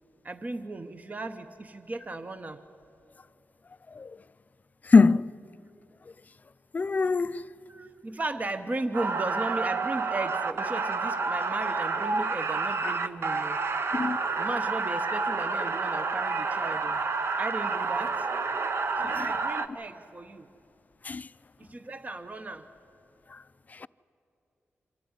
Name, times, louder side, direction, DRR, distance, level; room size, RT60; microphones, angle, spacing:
voice 1, 0.2-2.6 7.7-13.6 14.4-17.0 17.4-18.3 19.0-20.5 21.6-22.7, right 2 dB, 35° right, 0.9 m, -36 dB
voice 2, 4.9-5.3 6.7-7.4 13.9-14.2 19.0-19.3 21.1-21.2, left 4 dB, 35° left, 0.4 m, -21 dB
sound 1, 8.9-19.7, right 4 dB, 60° right, 0.9 m, -29 dB
25.5 x 14.0 x 9.7 m
wide cardioid pair, 90°, 5 cm